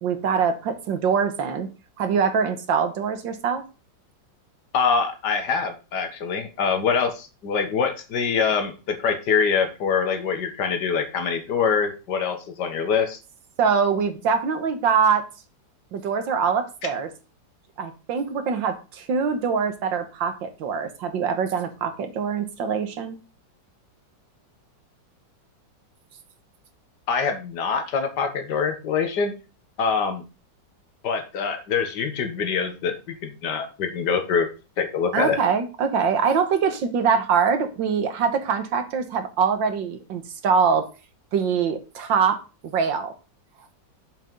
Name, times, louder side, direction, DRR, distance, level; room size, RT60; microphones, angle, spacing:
voice 1, 0.0-1.7 2.0-3.6 13.6-15.2 15.9-17.1 17.8-23.2 35.1-40.9 41.3-43.1, right 6 dB, 90° right, 8 dB, 1.9 m, -23 dB
voice 2, 4.7-13.2 27.1-29.3 29.8-30.2 31.0-32.9 33.2-34.5 34.8-35.4, left 6 dB, 65° left, 6 dB, 2.0 m, -24 dB
7.3 x 6.0 x 5.3 m, 0.32 s
omnidirectional pair, 2.0 m